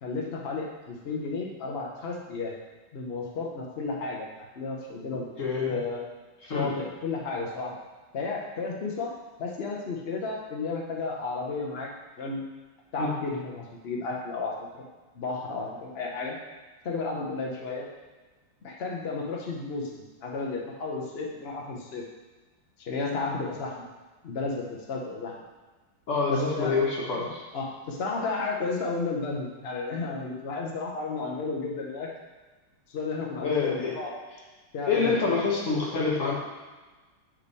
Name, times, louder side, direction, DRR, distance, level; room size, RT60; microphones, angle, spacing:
voice 1, 0.0-2.6 2.9-4.3 4.5-5.3 5.7-6.1 6.4-7.8 8.1-11.9 12.2-12.5 12.9-14.8 15.1-16.4 16.8-17.9 18.6-22.1 22.8-23.9 24.2-25.4 26.3-26.8 27.5-32.1 32.9-34.2 34.7-35.4, left 3 dB, 80° left, -1 dB, 0.5 m, -33 dB
voice 2, 5.4-5.8 6.4-6.7 13.0-13.1 26.1-27.4 33.4-34.0 34.9-36.3, left 4 dB, 45° left, -2 dB, 1.4 m, -26 dB
9.0 x 3.5 x 4.1 m, 1.3 s
omnidirectional pair, 2.3 m